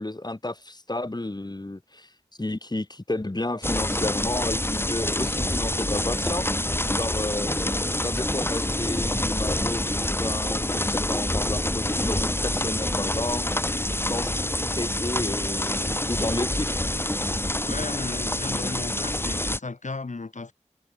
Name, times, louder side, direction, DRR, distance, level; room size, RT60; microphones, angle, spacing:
voice 1, 0.0-2.1 2.4-6.5 6.9-13.4 14.0-14.4 14.7-16.8, left 2 dB, 35° left, 4.8 m, -32 dB
sound 1, 3.6-19.6, left 1 dB, 20° left, 1.6 m, -27 dB
voice 2, 17.6-20.5, left 3 dB, 75° left, 4.5 m, -35 dB
wide cardioid pair, 60°, 13 cm